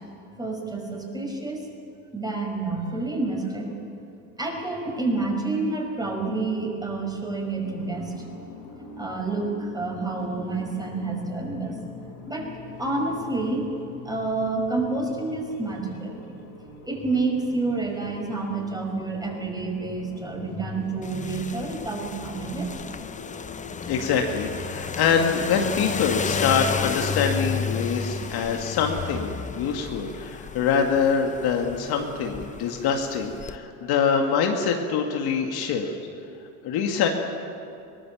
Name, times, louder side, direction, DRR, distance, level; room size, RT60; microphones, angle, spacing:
voice 1, 0.4-1.7 2.1-3.7 4.4-8.1 9.0-11.8 12.2-12.5 12.8-13.7 14.0-16.2 16.8-22.7, right 3 dB, 10° right, 1 dB, 5.9 m, -28 dB
sound 1, 7.6-23.8, left 4 dB, 90° left, 4.9 m, -44 dB
sound 2, 21.0-33.6, left 5 dB, 15° left, 0.8 m, -32 dB
voice 2, 23.9-36.0 36.6-37.1, left 6 dB, 55° left, 3 dB, 2.2 m, -24 dB
22.5 x 19.0 x 7.3 m, 2.6 s
hypercardioid pair, 90°, 46 cm